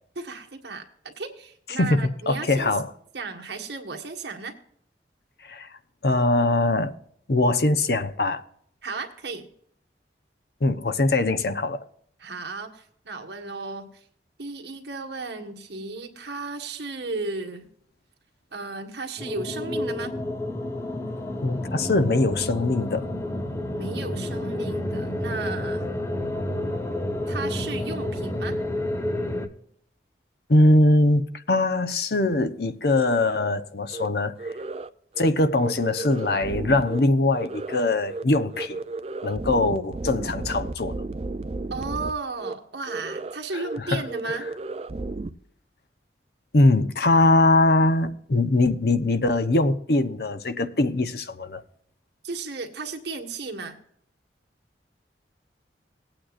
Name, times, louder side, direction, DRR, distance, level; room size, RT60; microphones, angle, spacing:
voice 1, 0.1-2.7 3.1-4.5 8.8-9.5 12.2-14.0 14.4-17.7 18.5-20.2 23.7-25.9 27.3-28.5 41.7-44.5 52.2-53.7, right 3 dB, 75° right, 1.6 m, -34 dB
voice 2, 1.8-2.9 5.4-5.7 6.0-6.9 7.3-8.4 10.6-11.8 21.4-23.1 30.5-34.3 35.2-38.8 39.2-40.9 43.9-44.0 46.5-51.6, left 2 dB, 60° left, 0.8 m, -22 dB
sound 1, 19.2-29.5, left 1 dB, 15° left, 0.9 m, -30 dB
sound 2, 33.9-34.1 34.4-34.9 35.1-35.3 35.6-37.0 37.3-37.8 38.1-38.2 38.5-42.1 42.4-42.5 42.9-43.4 43.6-43.8 44.1-45.3, right 3 dB, 35° right, 0.5 m, -33 dB
19.0 x 8.9 x 2.5 m
head